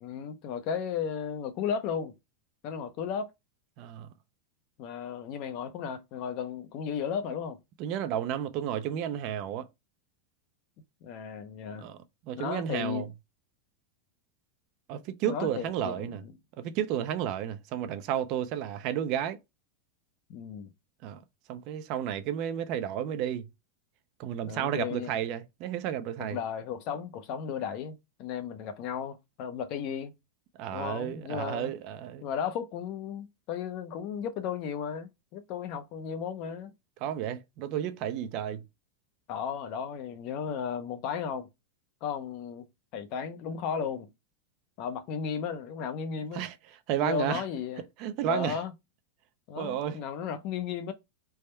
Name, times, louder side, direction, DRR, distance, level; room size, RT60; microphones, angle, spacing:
voice 1, 0.0-2.1 2.6-3.3 4.8-7.6 11.0-11.9 12.4-13.1 15.3-16.3 20.3-20.7 24.4-25.2 26.2-30.1 30.7-31.7 32.2-36.7 39.3-41.5 42.0-42.7 42.9-44.1 44.8-46.5 47.0-47.8 48.2-48.7 49.5-50.9, left 7 dB, 45° left, 0.5 m, -35 dB
voice 2, 3.8-4.1 7.8-9.7 11.8-12.0 12.3-13.1 14.9-16.2 16.6-19.4 21.0-21.2 21.5-23.5 24.2-26.4 30.6-32.3 37.0-38.6 46.3-46.5 46.9-47.4 48.0-48.6 49.6-50.0, right 10 dB, 45° right, 0.4 m, -32 dB
3.4 x 2.1 x 4.2 m
supercardioid pair, 150°, 0 cm